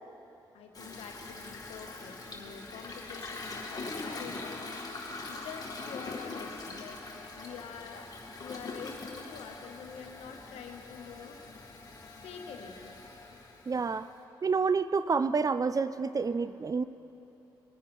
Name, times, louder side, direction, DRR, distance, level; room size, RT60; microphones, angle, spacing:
voice 1, 0.5-8.1 8.4-11.4 12.2-13.1 14.0-14.1, left 6 dB, 80° left, 4 dB, 1.0 m, -46 dB
Toilet flush, 0.7-14.2, left 3 dB, 40° left, 1.6 m, -43 dB
voice 2, 13.7-14.1 14.4-16.8, right 5 dB, 35° right, 14 dB, 0.4 m, -28 dB
19.5 x 9.4 x 3.1 m, 2.9 s
supercardioid pair, 45°, 10 cm